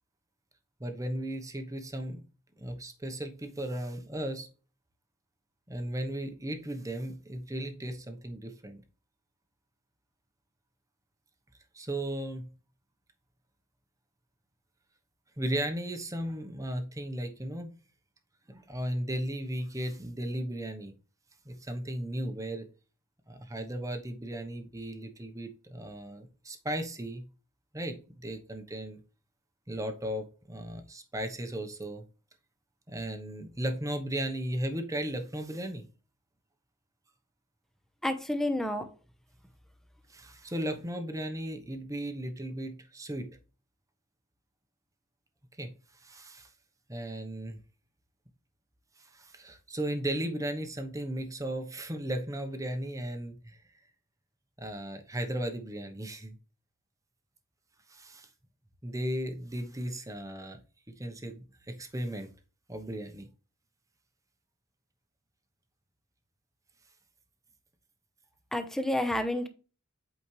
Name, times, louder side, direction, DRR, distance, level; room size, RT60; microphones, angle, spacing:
voice 1, 0.8-2.2 2.6-4.5 5.7-8.8 11.7-12.5 15.4-17.7 18.5-20.9 21.4-22.7 23.3-27.2 27.7-29.0 29.7-32.0 32.9-35.8 40.1-43.3 45.6-45.7 46.0-46.5 46.9-47.6 49.0-53.6 54.6-56.4 57.9-58.3 58.8-60.6 61.0-62.3 62.7-63.3, right 1 dB, 15° right, 1.0 m, -36 dB
voice 2, 38.0-38.8 68.5-69.5, left 1 dB, ahead, 0.9 m, -29 dB
8.5 x 5.1 x 3.2 m
head